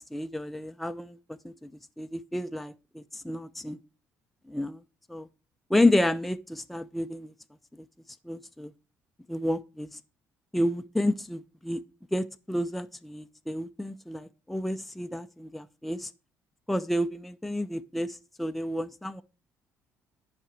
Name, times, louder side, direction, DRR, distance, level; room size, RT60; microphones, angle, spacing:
voice 1, 0.1-1.2 1.4-1.7 2.0-3.8 4.5-4.8 5.1-5.3 5.7-7.3 8.2-8.7 9.3-10.0 10.5-11.8 12.1-16.1 16.7-19.2, left 1 dB, ahead, 0.4 m, -30 dB
10.0 x 5.0 x 4.6 m
cardioid pair, 130°, 6 cm